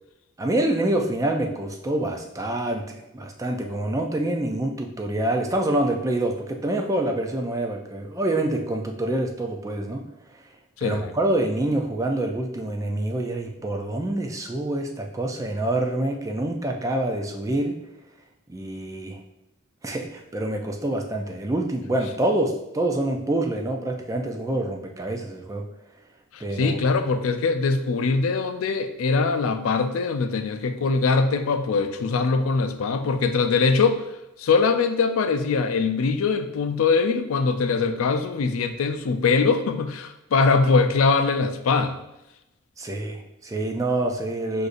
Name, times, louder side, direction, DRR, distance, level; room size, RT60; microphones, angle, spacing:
voice 1, 0.4-10.0 10.8-17.8 18.5-19.2 19.8-25.6 26.4-26.8 42.8-44.7, right 1 dB, 15° right, 2 dB, 0.3 m, -26 dB
voice 2, 10.8-11.1 26.3-34.0 34.4-42.0, left 4 dB, 80° left, 8 dB, 0.4 m, -22 dB
6.3 x 2.6 x 2.5 m, 0.92 s
head